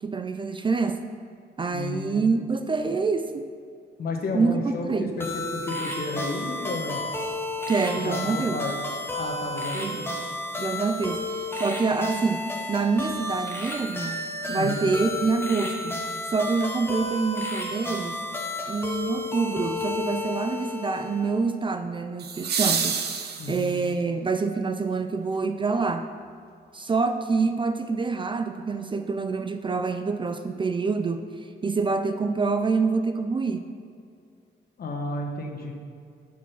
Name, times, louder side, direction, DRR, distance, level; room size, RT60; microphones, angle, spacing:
voice 1, 0.0-1.0 1.6-3.5 4.3-5.2 7.7-8.6 9.7-10.0 10.6-12.4 12.7-14.2 14.5-15.9 16.3-18.2 18.7-23.0 23.5-26.1 26.7-31.3 31.6-33.6, right 4 dB, 25° right, 8 dB, 0.4 m, -26 dB
voice 2, 1.7-2.4 4.0-7.0 8.0-8.8 9.2-10.1 14.4-14.9 23.4-23.8 34.8-35.7, left 3 dB, 55° left, 2 dB, 1.2 m, -32 dB
sound 1, 5.2-21.4, left 2 dB, 10° left, 1.1 m, -32 dB
sound 2, 16.6-16.7 22.2-24.0 26.2-26.3, right 6 dB, 65° right, 0.7 m, -28 dB
6.9 x 5.2 x 5.6 m, 2.4 s
cardioid pair, 95°, 18 cm